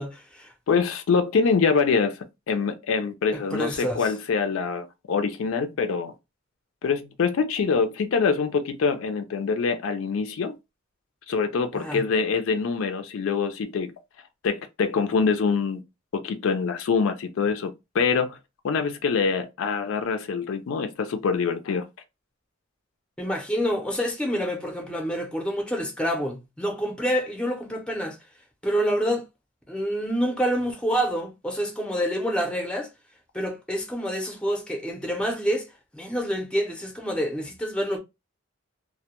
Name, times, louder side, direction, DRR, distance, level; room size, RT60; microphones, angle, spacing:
voice 1, 0.0-0.5 3.3-4.0 11.7-12.0 23.2-28.2 28.6-29.2 29.7-32.9 33.3-35.7 35.9-38.0, equal, 5° left, 0.5 m, -27 dB
voice 2, 0.7-2.2 2.5-6.1 6.8-10.5 11.3-13.9 14.4-15.8 16.1-18.4 18.6-21.9, left 5 dB, 75° left, 0.4 m, -25 dB
2.1 x 2.1 x 2.8 m
head